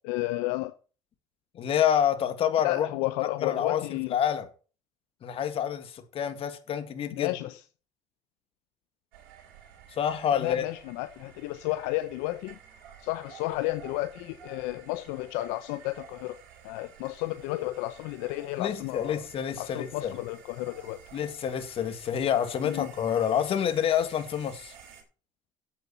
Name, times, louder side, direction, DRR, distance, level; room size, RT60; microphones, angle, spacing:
voice 1, 0.1-0.7 2.6-4.2 7.1-7.6 10.3-12.6 13.0-16.4 16.6-19.2 19.6-21.0 22.6-22.9, left 18 dB, 80° left, 0.7 m, -32 dB
voice 2, 1.5-2.9 3.4-4.5 5.2-7.3 9.9-10.6 18.6-20.1 21.1-24.7, left 9 dB, 50° left, 1.9 m, -28 dB
sound 1, 9.1-25.0, right 8 dB, 80° right, 3.4 m, -52 dB
8.1 x 7.0 x 7.1 m
supercardioid pair, 80°, 12 cm